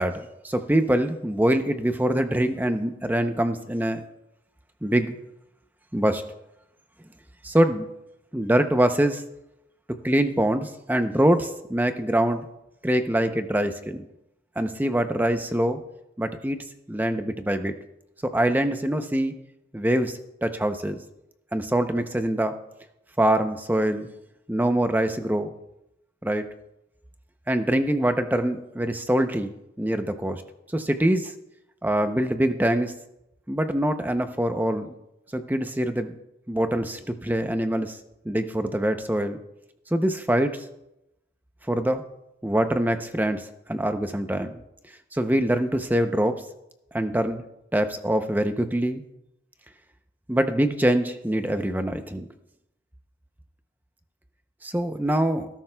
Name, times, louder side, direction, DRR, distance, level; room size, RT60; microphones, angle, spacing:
voice 1, 0.0-4.0 4.8-5.2 5.9-6.2 7.4-7.9 8.3-9.2 10.0-12.5 12.8-14.0 14.6-15.8 16.2-17.7 18.2-19.3 19.7-21.0 21.5-22.6 23.2-24.1 24.5-25.5 26.2-26.5 27.5-30.4 30.7-31.3 31.8-32.9 33.5-34.9 35.3-36.1 36.5-38.0 38.3-39.4 39.9-40.6 41.7-42.1 42.4-44.6 45.1-46.4 46.9-47.4 47.7-49.0 50.3-52.3 54.6-55.5, right 1 dB, 10° right, 8 dB, 0.6 m, -24 dB
19.0 x 12.0 x 2.3 m, 0.89 s
head